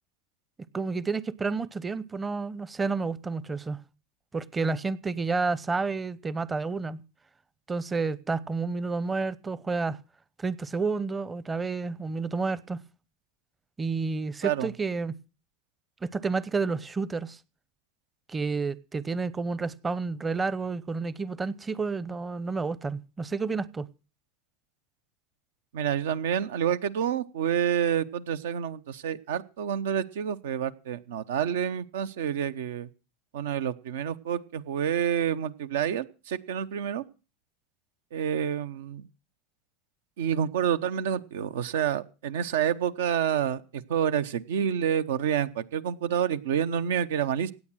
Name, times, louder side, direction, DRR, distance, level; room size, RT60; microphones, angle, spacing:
voice 1, 0.7-3.8 4.3-7.0 7.7-10.0 10.4-12.8 13.8-15.1 16.0-17.4 18.3-23.9, right 4 dB, 20° right, 0.8 m, -30 dB
voice 2, 25.7-32.9 33.3-37.0 38.1-39.1 40.2-47.5, right 9 dB, 70° right, 0.9 m, -28 dB
17.0 x 9.1 x 6.3 m
hypercardioid pair, 85°, 0 cm